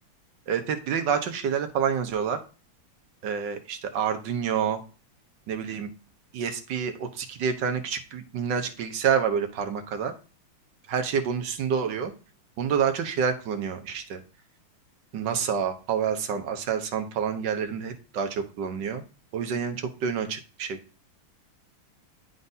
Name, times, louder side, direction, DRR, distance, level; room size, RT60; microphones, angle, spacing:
voice 1, 0.5-2.4 3.2-4.8 5.5-5.9 6.3-10.1 10.9-12.1 12.6-14.2 15.1-19.0 19.3-20.8, right 7 dB, 65° right, 6 dB, 1.3 m, -28 dB
10.5 x 3.9 x 2.7 m, 0.35 s
omnidirectional pair, 2.4 m